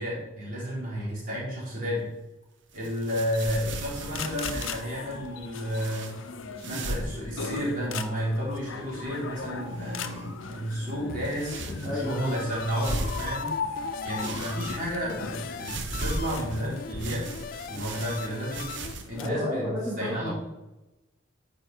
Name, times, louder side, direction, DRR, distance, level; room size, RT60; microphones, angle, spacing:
voice 1, 0.0-2.1 2.7-6.2 6.6-13.5 14.0-17.3 17.7-18.7 19.1-19.7 20.0-20.3, equal, 40° right, -5 dB, 4.0 m, -32 dB
sound 1, 2.7-4.9 5.7-6.2 6.6-7.2 7.5-7.6 8.1-8.7 9.7-10.4 11.2-12.1 12.6-13.8 14.2-15.2 15.6-19.1, right 2 dB, 55° right, 1.0 m, -37 dB
sound 2, 3.1-19.3, left 5 dB, 70° left, 0.7 m, -39 dB
sound 3, 11.1-18.9, left 5 dB, 45° left, 0.4 m, -40 dB
voice 2, 11.8-12.4 19.1-20.3, left 1 dB, 15° right, -9 dB, 2.7 m, -31 dB
13.5 x 6.0 x 4.4 m, 0.99 s
head